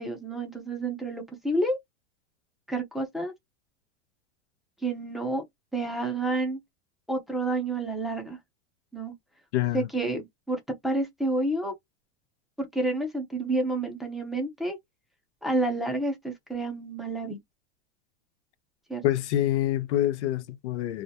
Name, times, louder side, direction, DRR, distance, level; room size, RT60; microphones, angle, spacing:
voice 1, 0.0-1.8 2.7-3.3 4.8-5.4 5.7-6.6 7.1-8.4 8.9-9.1 9.7-11.7 12.6-14.8 15.4-17.4 18.9-19.0, right 2 dB, ahead, 0.6 m, -29 dB
voice 2, 9.5-9.9 19.0-21.0, left 13 dB, 90° left, 0.6 m, -26 dB
2.3 x 2.1 x 2.7 m
supercardioid pair, 145°, 33 cm